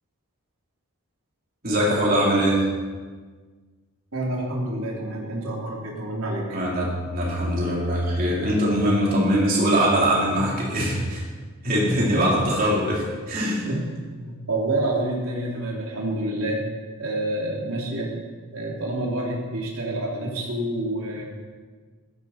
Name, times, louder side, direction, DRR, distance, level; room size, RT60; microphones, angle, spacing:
voice 1, 1.6-2.7 6.5-11.2 11.6-13.7, equal, 40° right, -5 dB, 4.3 m, -22 dB
voice 2, 4.1-6.4 11.9-12.4 13.6-13.8 14.2-16.6 17.0-18.1 18.5-21.2, right 1 dB, 75° right, -3 dB, 3.6 m, -28 dB
15.5 x 13.5 x 4.6 m, 1.5 s
head